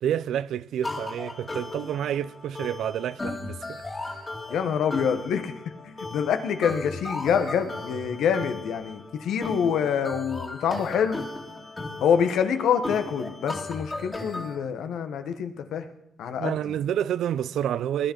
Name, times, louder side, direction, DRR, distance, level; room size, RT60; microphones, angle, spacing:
voice 1, 0.0-4.2 16.4-18.1, right 10 dB, 75° right, 0.4 m, -29 dB
sound 1, 0.8-14.5, left 2 dB, 25° left, 2.5 m, -36 dB
voice 2, 4.5-11.2 12.0-15.9 16.2-16.8, left 7 dB, 75° left, 1.2 m, -26 dB
20.0 x 10.5 x 4.5 m
supercardioid pair, 60°, 0 cm